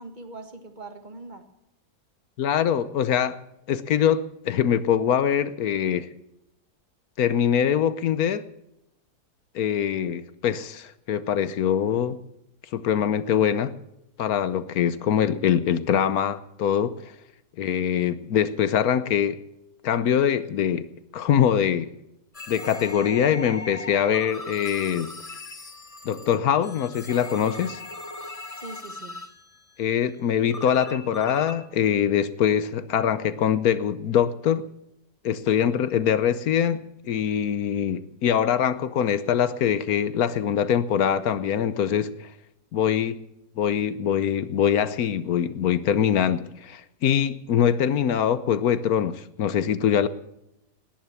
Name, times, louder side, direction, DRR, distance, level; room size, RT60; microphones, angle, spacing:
voice 1, 0.0-1.5 28.5-29.2, right 2 dB, 30° right, 7 dB, 1.7 m, -41 dB
voice 2, 2.4-3.4 3.7-6.1 7.2-8.4 9.5-12.2 12.7-13.7 14.2-17.0 17.6-19.4 19.8-20.9 21.1-21.9 22.5-25.1 26.0-27.8 29.8-34.7 35.2-42.3 42.7-43.2 43.6-50.1, left 9 dB, 70° left, 15 dB, 1.3 m, -23 dB
sound 1, 22.3-29.6 30.5-31.6, left 2 dB, 25° left, 1.2 m, -38 dB
19.0 x 10.5 x 7.1 m, 0.84 s
omnidirectional pair, 1.7 m